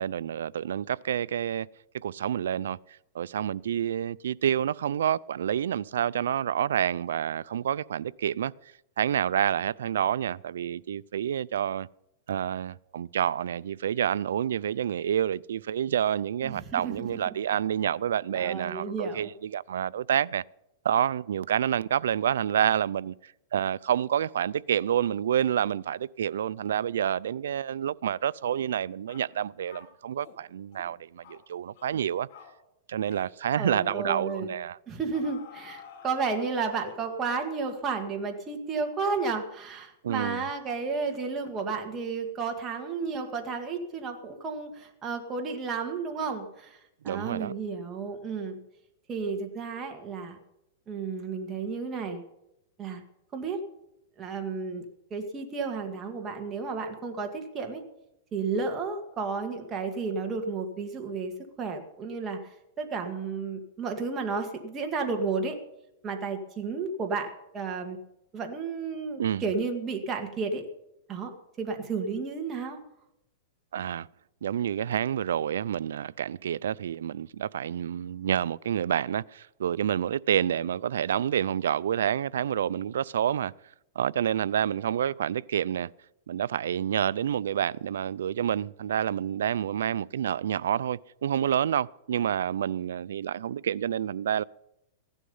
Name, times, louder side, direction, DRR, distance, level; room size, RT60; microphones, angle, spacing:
voice 1, 0.0-1.7 1.9-2.8 3.1-8.5 9.0-11.9 12.3-20.4 20.8-32.3 32.9-34.8 40.0-40.4 47.0-47.5 69.2-69.4 73.7-74.1 74.4-83.5 84.0-85.9 86.3-94.4, right 9 dB, 90° right, 0.4 m, -28 dB
voice 2, 16.4-17.2 18.3-19.3 33.6-34.5 34.9-46.8 47.0-48.6 49.1-50.4 50.9-52.2 52.8-53.0 53.3-53.6 54.2-54.8 55.1-57.8 58.3-65.6 66.0-68.0 68.3-70.6 71.1-71.3 71.6-72.8, right 4 dB, 20° right, 2.0 m, -32 dB
sound 1, 28.5-28.7 29.1-29.3 29.7-30.4 30.7-30.9 31.2-31.4 31.7-32.0 32.3-32.6 33.0-33.3 33.6-33.9 34.3-34.5 35.1-37.2, left 7 dB, 55° left, 3.0 m, -50 dB
16.0 x 11.5 x 5.5 m
supercardioid pair, 155°, 0 cm